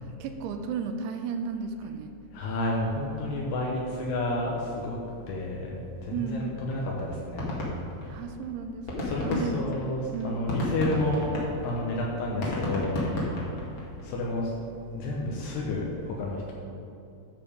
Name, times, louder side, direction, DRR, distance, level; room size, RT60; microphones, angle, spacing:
voice 1, 0.2-2.1 6.1-6.5 8.1-9.6 9.9-10.5, right 5 dB, 85° right, 6 dB, 2.6 m, -34 dB
voice 2, 2.3-5.0 5.3-5.8 6.1-7.6 8.0-8.1 9.0-11.3 11.6-13.0 13.8-14.5 14.9-16.5, left 2 dB, 80° left, -3 dB, 3.0 m, -30 dB
sound 1, 6.4-6.5 6.7-6.8 7.1-8.4 8.7-14.0, left 1 dB, 55° left, 1.4 m, -32 dB
10.0 x 6.7 x 5.1 m, 2.8 s
omnidirectional pair, 4.8 m